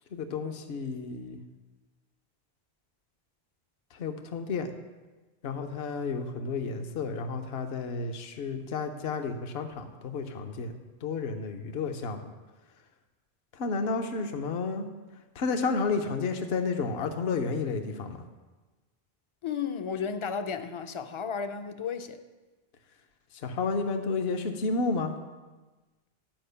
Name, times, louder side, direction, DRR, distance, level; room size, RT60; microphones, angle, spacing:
voice 1, 0.1-1.4 3.9-4.7 5.4-12.3 13.5-14.9 15.4-18.2 23.4-25.1, left 4 dB, 70° left, 1.0 m, -31 dB
voice 2, 19.4-22.2, left 6 dB, 45° left, 0.4 m, -33 dB
11.0 x 5.0 x 6.6 m
omnidirectional pair, 1.1 m